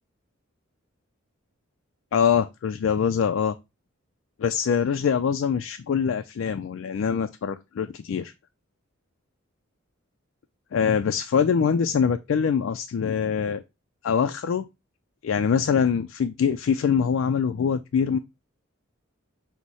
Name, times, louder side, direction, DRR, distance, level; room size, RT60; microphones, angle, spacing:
voice 1, 2.1-3.5 4.4-8.3 10.7-13.6 14.0-14.6 15.2-18.2, left 7 dB, 70° left, 0.3 m, -24 dB
6.2 x 2.1 x 4.0 m
head